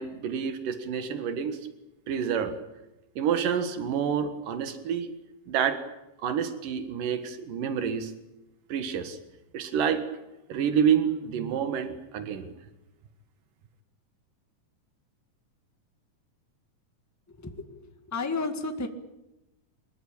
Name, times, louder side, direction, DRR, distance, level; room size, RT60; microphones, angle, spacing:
voice 1, 0.0-1.6 2.1-2.5 3.2-5.1 5.5-5.8 6.2-8.1 8.7-9.2 9.5-10.0 10.5-12.5, right 8 dB, 90° right, 9 dB, 3.3 m, -28 dB
voice 2, 17.4-18.9, left 3 dB, 10° left, 7 dB, 0.8 m, -32 dB
23.5 x 21.5 x 8.8 m, 0.96 s
omnidirectional pair, 3.7 m